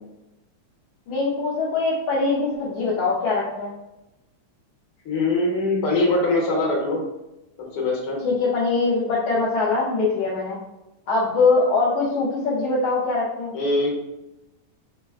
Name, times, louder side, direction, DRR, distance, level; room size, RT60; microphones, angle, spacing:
voice 1, 1.1-3.7 8.2-10.6 11.1-13.5, left 3 dB, 75° left, -5 dB, 1.4 m, -22 dB
voice 2, 5.0-7.0 7.7-8.2 13.5-13.9, left 2 dB, 60° left, -2 dB, 1.6 m, -22 dB
6.1 x 2.2 x 3.4 m, 0.95 s
omnidirectional pair, 3.6 m